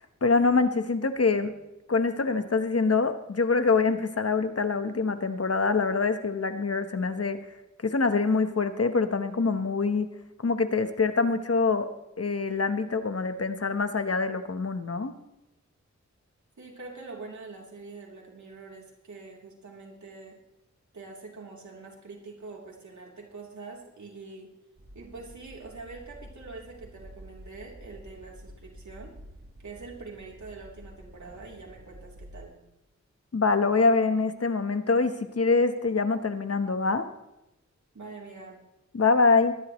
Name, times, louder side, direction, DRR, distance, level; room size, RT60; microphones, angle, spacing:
voice 1, 0.2-1.5 1.9-7.4 7.8-10.1 10.4-11.9 12.2-15.1 33.3-37.1 38.9-39.5, left 4 dB, 55° left, 9 dB, 1.1 m, -25 dB
voice 2, 16.6-20.4 20.9-24.5 24.9-29.1 29.6-32.6 37.9-38.6, right 3 dB, 75° right, -1 dB, 3.4 m, -44 dB
sound 1, 24.8-32.4, equal, 50° right, 4.1 m, -49 dB
22.5 x 11.0 x 3.2 m, 0.92 s
wide cardioid pair, 75°, 29 cm